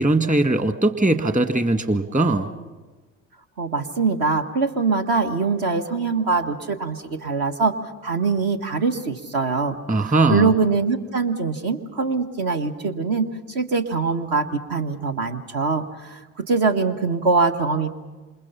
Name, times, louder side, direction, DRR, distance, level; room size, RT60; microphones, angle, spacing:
voice 1, 0.0-2.5 9.9-10.5, right 2 dB, 20° right, 8 dB, 2.0 m, -20 dB
voice 2, 3.6-18.0, right 4 dB, 55° right, 5 dB, 1.8 m, -23 dB
28.0 x 27.5 x 5.8 m, 1.3 s
hypercardioid pair, 60°, 41 cm